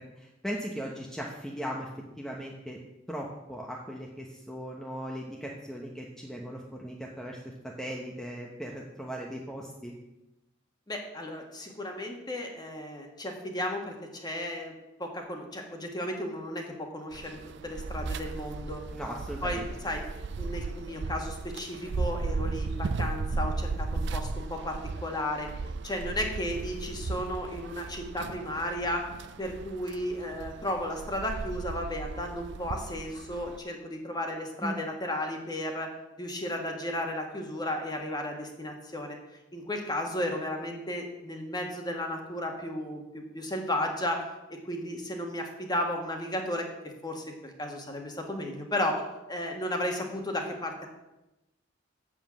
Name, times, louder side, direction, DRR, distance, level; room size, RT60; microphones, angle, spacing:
voice 1, 0.0-1.9 2.2-2.8 3.1-9.9 18.9-19.7 34.6-34.8, equal, ahead, -2 dB, 1.0 m, -38 dB
voice 2, 10.9-14.7 15.0-17.4 17.6-18.8 19.4-20.1 20.4-25.5 25.8-29.1 29.4-35.9 36.2-39.2 39.5-46.7 47.0-49.0 49.3-50.9, left 1 dB, 20° left, 2 dB, 1.7 m, -34 dB
sound 1, 17.1-33.6, right 3 dB, 65° right, 0.5 m, -36 dB
7.7 x 7.4 x 7.5 m, 0.95 s
head